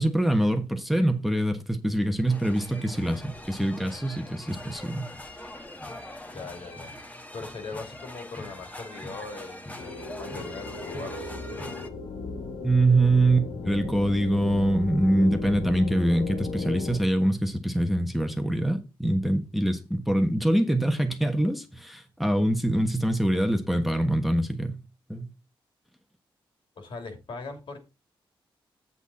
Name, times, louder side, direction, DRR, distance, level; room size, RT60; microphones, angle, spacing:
voice 1, 0.0-5.1 12.6-24.8 25.1-25.3, right 1 dB, ahead, 1.3 m, -24 dB
sound 1, 2.3-11.9, left 1 dB, 15° left, 1.5 m, -42 dB
voice 2, 6.3-6.9 7.3-11.8 26.8-27.8, left 3 dB, 65° left, 2.8 m, -40 dB
sound 2, 9.8-17.0, left 4 dB, 90° left, 1.7 m, -35 dB
8.2 x 8.1 x 4.2 m
cardioid pair, 100°, 9 cm